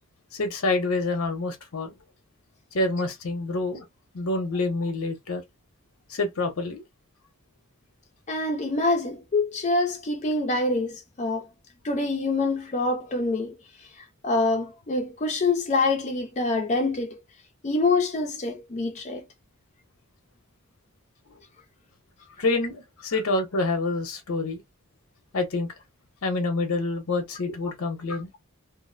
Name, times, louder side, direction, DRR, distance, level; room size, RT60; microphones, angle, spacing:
voice 1, 0.3-1.9 2.7-3.8 4.1-5.4 6.1-6.8 22.4-24.6 25.3-25.7 26.2-28.3, left 2 dB, 80° left, 0.7 m, -27 dB
voice 2, 8.3-11.5 11.8-13.6 13.9-17.2 17.6-19.3, left 3 dB, 35° left, 0.5 m, -26 dB
2.5 x 2.0 x 2.5 m
head